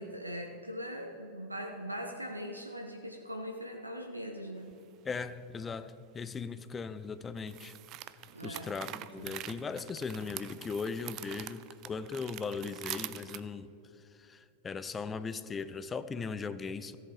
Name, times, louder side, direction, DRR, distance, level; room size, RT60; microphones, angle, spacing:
voice 1, 0.0-4.7 8.3-8.7 9.2-9.4, equal, 85° right, 3 dB, 0.7 m, -41 dB
sound 1, 4.7-4.8 7.4-13.4, right 14 dB, 40° right, 0.4 m, -44 dB
voice 2, 5.0-7.7 8.4-17.0, left 5 dB, 20° left, 13 dB, 0.5 m, -38 dB
14.0 x 7.9 x 4.9 m, 2.9 s
figure-of-eight pair, 90°, 0 cm